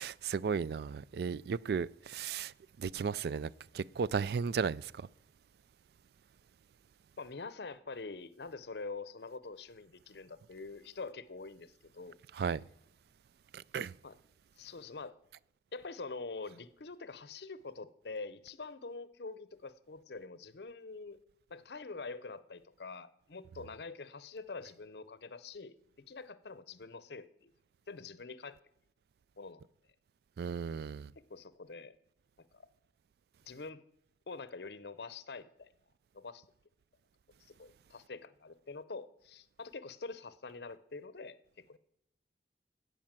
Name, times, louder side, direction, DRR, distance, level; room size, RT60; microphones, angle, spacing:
voice 1, 0.0-2.5 2.8-4.9 12.4-12.6 13.7-13.9 30.4-31.1, right 6 dB, 60° right, 0.3 m, -34 dB
voice 2, 7.2-12.2 14.0-14.2 14.6-15.2 15.7-21.2 21.5-25.7 26.1-27.5 27.9-28.6 29.4-29.6 31.2-32.0 32.4-32.7 33.5-33.8 34.3-35.7 36.1-36.4 37.4-41.8, left 4 dB, 65° left, 0.7 m, -45 dB
16.0 x 5.4 x 7.4 m
head